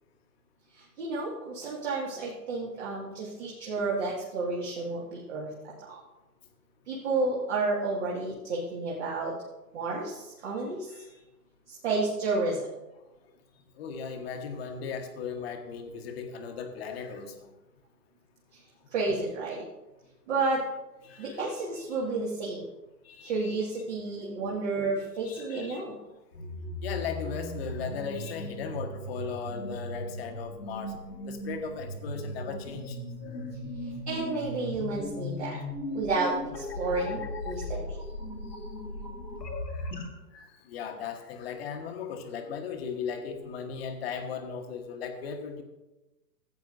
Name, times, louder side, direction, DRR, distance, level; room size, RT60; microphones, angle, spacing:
voice 1, 0.7-5.5 5.8-5.9 6.9-9.3 9.7-10.9 11.7-12.7 18.5-18.6 18.9-19.6 20.3-20.6 21.2-22.7 23.2-26.0 33.8-35.6 35.9-38.0, right 3 dB, 40° right, -5 dB, 2.1 m, -31 dB
voice 2, 10.9-11.2 13.8-17.5 21.0-21.4 21.8-21.9 23.0-23.5 25.2-25.8 26.8-30.9 31.2-33.0 35.5-35.6 37.6-37.7 38.5-38.6 39.7-39.9 40.3-45.6, left 6 dB, 40° left, 5 dB, 1.3 m, -37 dB
sound 1, 26.3-40.1, left 1 dB, 90° left, 1.9 m, -37 dB
16.0 x 8.8 x 2.6 m, 1.0 s
hypercardioid pair, 130°, 49 cm